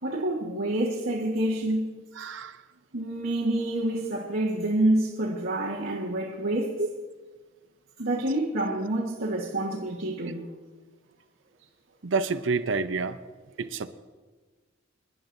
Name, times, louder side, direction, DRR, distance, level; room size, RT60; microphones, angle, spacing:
voice 1, 0.0-1.9 2.9-6.8 8.0-10.5, right 1 dB, 85° right, 1.5 m, -27 dB
voice 2, 2.2-2.6 6.8-6.9 12.0-13.2 13.6-13.9, right 4 dB, 70° right, 0.7 m, -28 dB
27.0 x 11.0 x 2.7 m
head